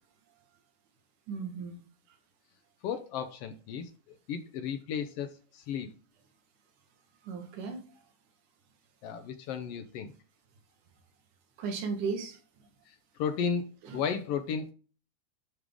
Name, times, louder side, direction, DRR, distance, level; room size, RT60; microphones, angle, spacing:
voice 1, 1.3-1.8 7.2-7.8 11.6-12.4 13.8-14.0, right 5 dB, 80° right, 2.8 m, -35 dB
voice 2, 2.8-3.9 4.3-5.9 9.0-10.1 12.9-14.7, left 7 dB, 85° left, 1.3 m, -34 dB
11.0 x 3.7 x 3.5 m
omnidirectional pair, 3.6 m